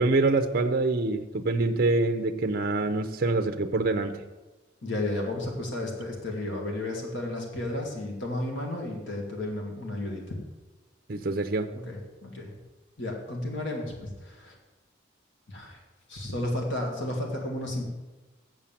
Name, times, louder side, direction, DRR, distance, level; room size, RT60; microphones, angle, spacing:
voice 1, 0.0-4.2 11.1-11.7, right 3 dB, 50° right, 8 dB, 0.6 m, -25 dB
voice 2, 4.8-10.4 11.7-12.5 13.0-14.5 15.5-15.8 16.1-17.8, left 1 dB, 70° left, 0 dB, 2.0 m, -33 dB
7.7 x 7.2 x 7.3 m, 1.1 s
head